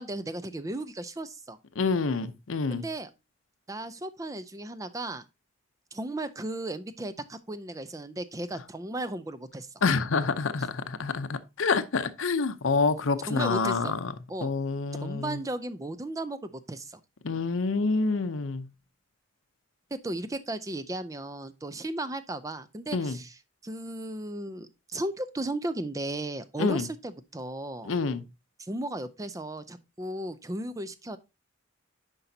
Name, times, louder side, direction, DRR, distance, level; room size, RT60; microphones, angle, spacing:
voice 1, 0.0-1.6 2.7-3.1 3.7-5.2 5.9-9.7 13.3-14.0 14.3-14.5 14.9-17.0 19.9-27.9 28.6-31.2, right 1 dB, 15° right, 0.4 m, -35 dB
voice 2, 1.8-2.8 9.8-14.1 14.4-15.4 17.2-18.7 22.9-23.2 26.6-26.9 27.8-28.2, left 4 dB, 75° left, 0.6 m, -27 dB
9.9 x 5.3 x 2.7 m
head